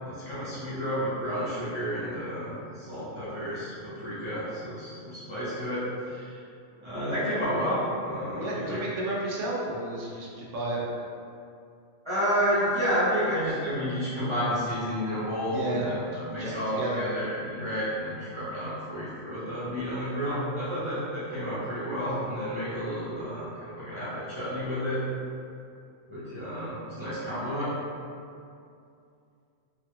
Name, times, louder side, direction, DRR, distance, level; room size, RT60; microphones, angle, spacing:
voice 1, 0.0-5.8 6.1-6.4 6.8-8.8 12.0-25.0 26.1-27.7, equal, 35° right, -13 dB, 0.5 m, -31 dB
voice 2, 8.4-10.8 15.5-15.9 16.4-17.0, right 2 dB, 70° right, -4 dB, 0.9 m, -32 dB
2.9 x 2.3 x 2.9 m, 2.5 s
omnidirectional pair, 1.4 m